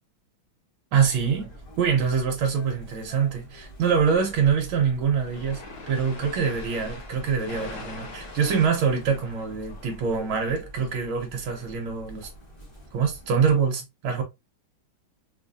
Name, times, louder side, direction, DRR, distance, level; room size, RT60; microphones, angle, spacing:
voice 1, 0.9-5.6 5.9-12.3 12.9-14.2, right 6 dB, 80° right, 1.7 m, -25 dB
Chirp tweet, 1.0-13.5, equal, 15° left, 1.3 m, -46 dB
sound 1, 4.9-10.6, left 3 dB, 55° left, 1.5 m, -43 dB
3.5 x 3.3 x 2.5 m
omnidirectional pair, 2.3 m